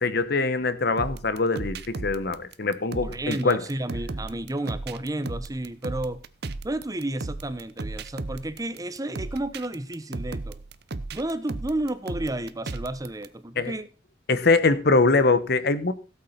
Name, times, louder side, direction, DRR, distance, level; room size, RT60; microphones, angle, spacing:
voice 1, 0.0-3.6 13.6-13.7 14.3-15.9, left 3 dB, 55° left, 1.0 m, -23 dB
sound 1, 1.0-13.3, right 3 dB, 55° right, 0.8 m, -36 dB
voice 2, 3.0-6.2 6.6-10.6 11.1-13.9, right 1 dB, 20° right, 0.8 m, -31 dB
16.5 x 8.4 x 4.3 m
head